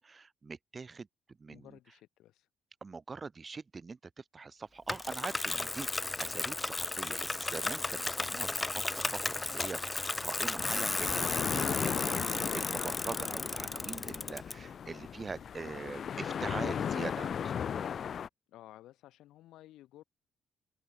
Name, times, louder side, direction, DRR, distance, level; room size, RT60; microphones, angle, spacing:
voice 1, 0.0-1.8 2.8-17.6, right 4 dB, 30° right, 2.2 m, -43 dB
voice 2, 1.5-2.5 18.5-20.0, left 14 dB, 85° left, 4.2 m, -55 dB
Bicycle, 4.9-14.5, left 2 dB, 20° left, 0.3 m, -34 dB
sound 1, 10.6-18.3, left 8 dB, 55° left, 0.7 m, -36 dB
cardioid pair, 90°, 0 cm